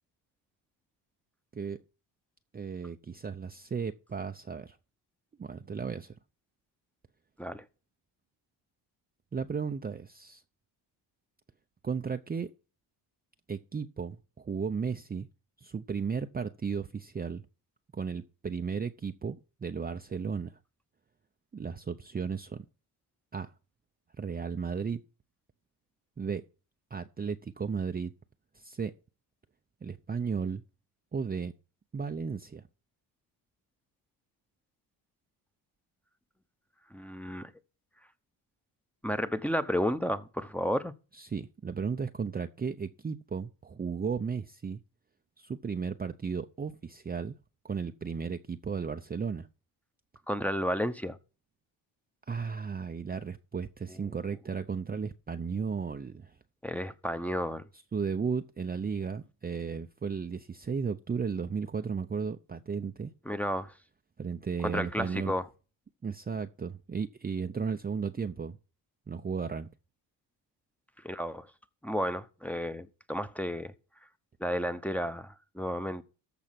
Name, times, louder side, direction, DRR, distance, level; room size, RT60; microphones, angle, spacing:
voice 1, 2.5-4.8 5.4-6.2 9.3-10.4 11.8-12.5 13.5-15.3 15.6-17.5 17.9-20.6 21.5-22.6 23.3-23.5 24.2-25.0 26.2-26.4 26.9-28.1 28.5-28.9 29.8-30.6 31.1-31.5 31.9-32.6 41.1-44.8 45.4-47.3 47.6-49.5 52.3-56.4 57.9-63.1 64.2-65.3 66.0-68.6 69.1-69.7, right 5 dB, 20° right, 0.6 m, -34 dB
voice 2, 36.9-37.5 39.0-40.9 50.3-51.2 56.6-57.6 63.3-63.7 64.6-65.4 71.0-71.5 71.8-73.7 74.4-76.0, equal, 5° left, 0.9 m, -32 dB
14.0 x 4.9 x 5.9 m
cardioid pair, 85°, 42 cm